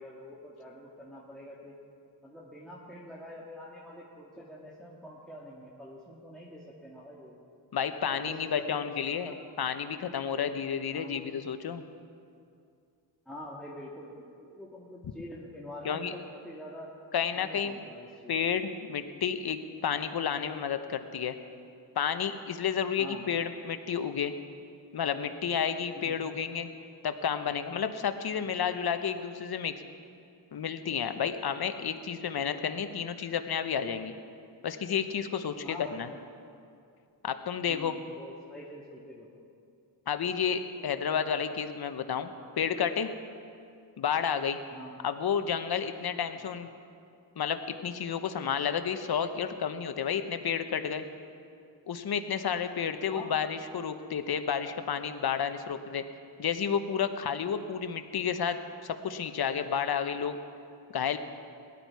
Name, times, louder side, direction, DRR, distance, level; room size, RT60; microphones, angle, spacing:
voice 1, 0.0-1.7 2.2-7.4 8.1-8.8 9.2-9.4 10.9-11.1 13.3-16.9 17.3-18.4 23.0-23.3 25.9-26.2 28.4-28.5 35.6-36.2 37.7-39.5 44.7-44.9 46.3-46.4 53.1-53.3, left 1 dB, ahead, -5 dB, 1.9 m, -46 dB
voice 2, 7.7-11.8 15.8-16.1 17.1-17.8 18.3-21.4 22.0-24.3 24.9-26.7 27.0-29.7 30.5-34.1 34.6-36.1 37.2-38.0 40.1-42.3 42.6-43.1 44.0-44.6 45.0-46.7 47.4-51.0 51.9-56.0 56.4-60.4 60.9-61.2, left 7 dB, 55° left, 9 dB, 1.0 m, -31 dB
17.0 x 11.0 x 4.7 m, 2.4 s
cardioid pair, 65°, 45 cm